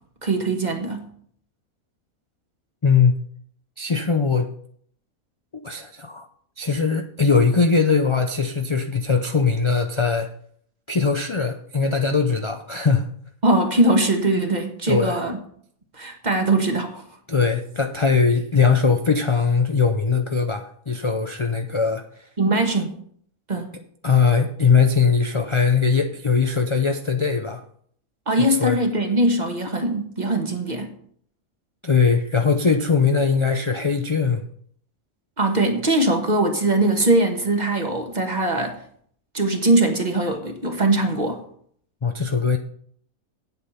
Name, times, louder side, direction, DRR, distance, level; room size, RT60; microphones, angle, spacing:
voice 1, 0.2-1.1 13.4-15.4 16.0-17.0 22.4-22.9 23.5-23.7 28.3-30.9 35.4-38.8 39.3-41.4, right 2 dB, 30° right, 1.5 m, -21 dB
voice 2, 2.8-3.2 3.8-4.5 5.6-6.2 6.6-10.3 10.9-13.1 14.9-15.2 17.3-22.0 24.0-27.6 28.6-28.8 31.8-34.4 42.0-42.6, left 5 dB, 45° left, 0.4 m, -20 dB
8.8 x 8.0 x 5.7 m
omnidirectional pair, 1.5 m